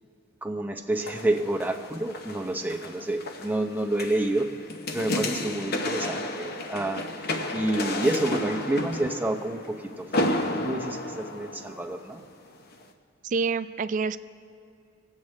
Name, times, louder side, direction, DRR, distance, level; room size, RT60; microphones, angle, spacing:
voice 1, 0.4-4.5 4.9-12.2, right 1 dB, 10° right, 3 dB, 0.7 m, -29 dB
sound 1, 0.9-12.2 12.7-12.8, left 1 dB, 55° left, 0.9 m, -32 dB
voice 2, 13.2-14.2, right 4 dB, 40° right, 14 dB, 0.3 m, -27 dB
25.0 x 8.4 x 3.2 m, 2.5 s
head